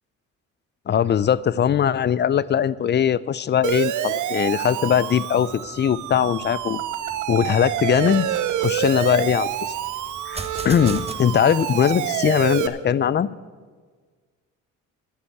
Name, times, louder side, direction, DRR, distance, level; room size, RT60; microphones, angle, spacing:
voice 1, 0.9-6.8 7.3-8.3 8.6-9.5 10.3-13.3, left 9 dB, 35° left, 19 dB, 0.4 m, -20 dB
Siren, 3.6-12.7, right 11 dB, 80° right, 0.8 m, -27 dB
sound 1, 5.4-11.1, right 4 dB, 20° right, 1.1 m, -40 dB
11.5 x 6.3 x 9.3 m, 1.5 s
cardioid pair, 90°, 30 cm